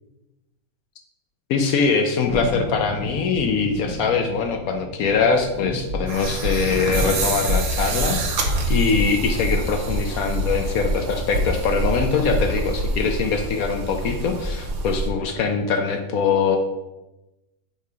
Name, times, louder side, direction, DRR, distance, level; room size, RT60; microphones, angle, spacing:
voice 1, 1.5-8.2 8.7-16.6, left 5 dB, 70° left, 5 dB, 0.9 m, -22 dB
Thunderstorm, 2.3-12.5 12.8-12.9, left 2 dB, 85° left, 1.8 m, -35 dB
Walk footsteps, 5.3-10.1 10.3-13.0, left 1 dB, 80° right, 1.8 m, -27 dB
sound 1, 6.1-15.1, right 2 dB, 60° right, 1.1 m, -27 dB
7.0 x 2.8 x 4.8 m, 0.99 s
omnidirectional pair, 2.0 m